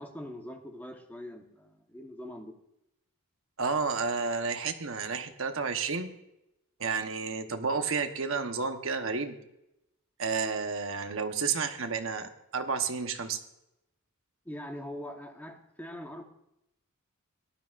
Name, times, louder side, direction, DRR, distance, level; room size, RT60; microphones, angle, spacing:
voice 1, 0.0-2.6 14.4-16.2, left 1 dB, 10° left, 3 dB, 1.1 m, -42 dB
voice 2, 3.6-6.1 6.8-9.4 10.2-13.4, right 5 dB, 60° right, 7 dB, 1.0 m, -31 dB
17.5 x 12.0 x 2.5 m, 0.87 s
head